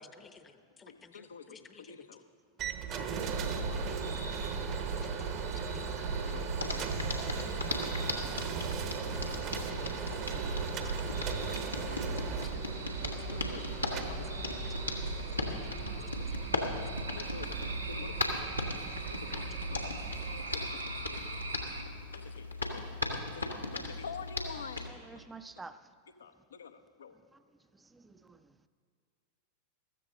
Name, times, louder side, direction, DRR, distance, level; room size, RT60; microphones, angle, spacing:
voice 1, 0.0-0.5 0.8-1.2 1.5-1.9 3.7-4.0 4.9-6.4 7.3-7.6 8.0-8.3 9.1-9.9 10.8-11.3 12.4-12.6 13.2-13.3 15.5-16.5, left 5 dB, 20° left, 9 dB, 0.8 m, -55 dB
voice 2, 0.9-2.2 5.4-5.5 6.2-6.9 9.3-11.1 11.4-12.0 13.0-14.4 16.8-18.3 19.1-19.9 20.2-25.3 26.2-27.2, left 6 dB, 70° left, 10 dB, 0.7 m, -48 dB
sound 1, 2.6-20.5, right 7 dB, 40° right, 1.0 m, -39 dB
sound 2, 3.1-21.8, right 3 dB, 85° right, 1.5 m, -40 dB
Hands, 6.6-24.9, left 2 dB, 90° left, 1.4 m, -38 dB
voice 3, 24.5-25.8 27.9-28.4, right 3 dB, 10° right, 12 dB, 0.5 m, -49 dB
14.5 x 14.0 x 3.8 m, 2.1 s
figure-of-eight pair, 90°, 0 cm